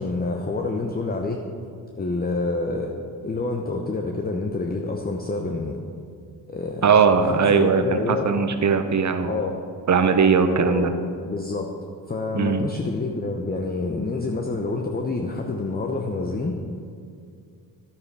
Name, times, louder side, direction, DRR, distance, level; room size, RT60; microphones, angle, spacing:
voice 1, 0.0-1.4 2.0-2.9 3.2-5.8 6.5-6.8 7.3-8.3 9.3-9.5 10.6-10.9 11.3-11.7 12.1-16.6, left 3 dB, 20° left, 2 dB, 0.9 m, -27 dB
voice 2, 6.8-9.4 9.9-10.9 12.3-12.7, right 5 dB, 40° right, 8 dB, 1.0 m, -19 dB
10.0 x 8.3 x 4.8 m, 2.3 s
supercardioid pair, 60°, 45 cm